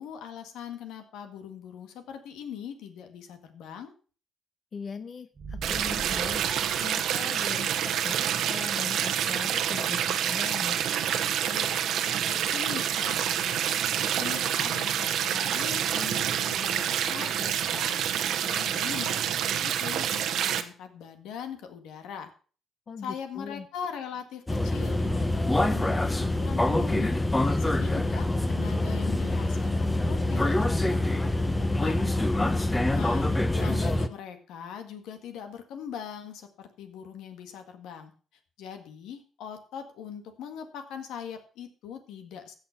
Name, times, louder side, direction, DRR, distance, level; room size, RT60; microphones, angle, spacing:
voice 1, 0.0-3.9 11.4-18.0 18.4-22.3 23.0-32.1 32.9-38.1 38.6-42.6, left 8 dB, 90° left, 7 dB, 1.8 m, -41 dB
voice 2, 4.7-10.8 22.9-23.7 32.6-33.0 33.3-33.5, left 5 dB, 45° left, 12 dB, 0.8 m, -40 dB
sound 1, 5.3-7.9, right 4 dB, 35° right, 1.7 m, -42 dB
sound 2, 5.6-20.6, right 9 dB, 80° right, 1.1 m, -28 dB
sound 3, 24.5-34.1, left 1 dB, 15° left, 0.9 m, -25 dB
15.5 x 5.8 x 5.9 m, 0.39 s
cardioid pair, 90°, 0 cm